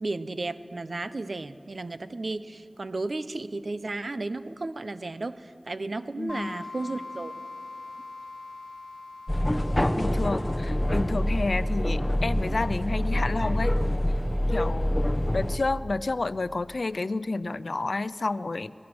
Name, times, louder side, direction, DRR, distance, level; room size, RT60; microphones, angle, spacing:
voice 1, 0.0-7.3, right 2 dB, 80° right, 12 dB, 0.7 m, -34 dB
voice 2, 6.2-6.5 10.0-13.7 14.5-14.9 15.3-18.7, left 3 dB, 85° left, 15 dB, 0.5 m, -30 dB
sound 1, 6.3-12.8, left 3 dB, 40° left, 1.8 m, -43 dB
sound 2, 9.3-15.6, left 1 dB, 20° left, 1.1 m, -26 dB
23.0 x 20.5 x 6.1 m, 2.4 s
wide cardioid pair, 50°, 0 cm